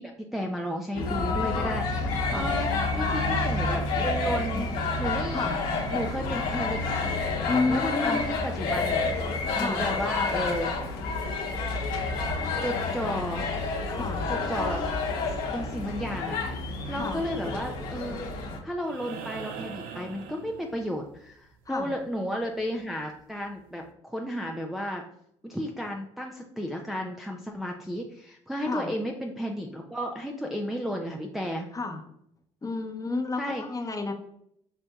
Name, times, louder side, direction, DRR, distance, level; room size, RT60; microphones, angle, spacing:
voice 1, 0.0-4.7 5.0-5.6 5.9-7.1 7.7-9.1 9.6-10.7 12.6-13.6 14.3-15.2 15.5-18.2 18.6-25.0 25.4-31.7 33.4-33.6, equal, ahead, 1 dB, 0.5 m, -33 dB
sound 1, 0.9-18.6, left 3 dB, 70° left, 1.0 m, -29 dB
voice 2, 7.5-8.3 9.5-9.9 13.9-14.2 16.9-17.2 21.7-21.9 28.6-28.9 31.7-32.0 32.6-34.1, left 3 dB, 20° left, 3 dB, 0.9 m, -31 dB
sound 2, 18.8-21.1 23.0-23.1, right 6 dB, 75° right, 0.5 m, -41 dB
6.5 x 2.6 x 2.3 m, 0.72 s
hypercardioid pair, 60°, 15 cm